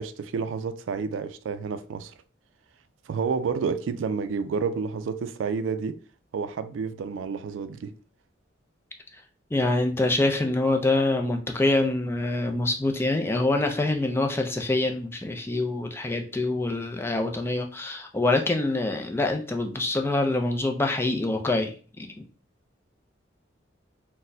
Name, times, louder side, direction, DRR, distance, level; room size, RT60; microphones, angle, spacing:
voice 1, 0.0-2.1 3.1-6.0 6.3-7.9, right 5 dB, 85° right, 0.3 m, -30 dB
voice 2, 9.5-22.1, left 2 dB, 15° left, 0.4 m, -25 dB
4.1 x 2.1 x 2.6 m
head